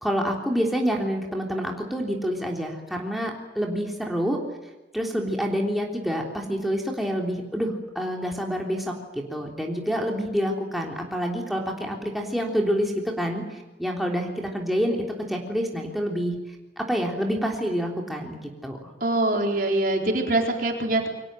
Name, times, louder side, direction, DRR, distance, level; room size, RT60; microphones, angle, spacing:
voice 1, 0.0-4.4 4.9-15.0 15.3-16.4 16.8-18.8, equal, ahead, -1 dB, 3.4 m, -27 dB
voice 2, 19.0-21.1, right 2 dB, 50° right, 2 dB, 4.4 m, -23 dB
29.0 x 24.0 x 7.7 m, 1.1 s
head